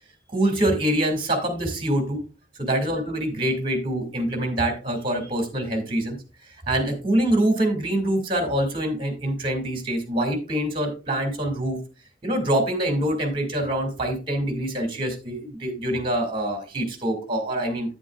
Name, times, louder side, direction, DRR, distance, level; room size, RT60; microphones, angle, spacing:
voice 1, 0.3-2.2 2.6-6.2 6.7-11.8 12.2-17.9, right 1 dB, 30° right, 4 dB, 2.2 m, -25 dB
9.7 x 8.7 x 2.4 m, 0.32 s
head